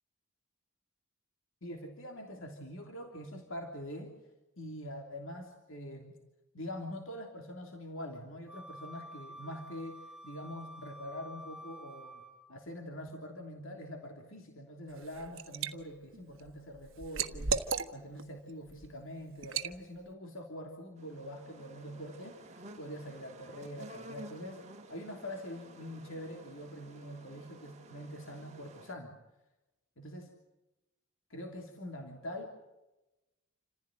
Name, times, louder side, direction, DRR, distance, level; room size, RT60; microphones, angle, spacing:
voice 1, 1.6-4.2 4.6-6.1 6.5-12.2 12.5-17.6 17.9-24.6 24.9-29.2 30.0-30.3 31.3-32.5, equal, 60° left, 2 dB, 3.1 m, -44 dB
Wind instrument woodwind instrument, 8.5-12.5, equal, 5° right, 2.2 m, -49 dB
Liquid, 14.9-15.7 16.1-18.2 18.7-18.9 19.4-19.7, right 5 dB, 60° right, 1.3 m, -35 dB
sound 1, 21.0-28.9, right 1 dB, 30° right, 1.8 m, -52 dB
28.5 x 15.5 x 9.1 m, 1.0 s
head